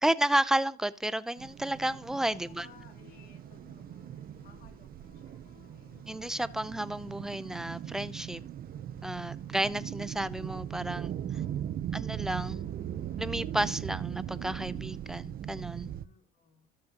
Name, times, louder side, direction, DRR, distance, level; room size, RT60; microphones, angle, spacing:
voice 1, 0.0-2.7 6.1-8.4 9.0-11.1 11.9-12.6 13.2-15.9, right 1 dB, 5° right, 0.5 m, -31 dB
sound 1, 1.4-16.0, right 10 dB, 55° right, 0.7 m, -39 dB
sound 2, 1.7-15.6, left 6 dB, 75° left, 3.4 m, -60 dB
voice 2, 2.3-6.0 11.3-11.8 16.0-16.7, left 7 dB, 55° left, 2.7 m, -60 dB
13.0 x 6.3 x 2.9 m
supercardioid pair, 75°, 18 cm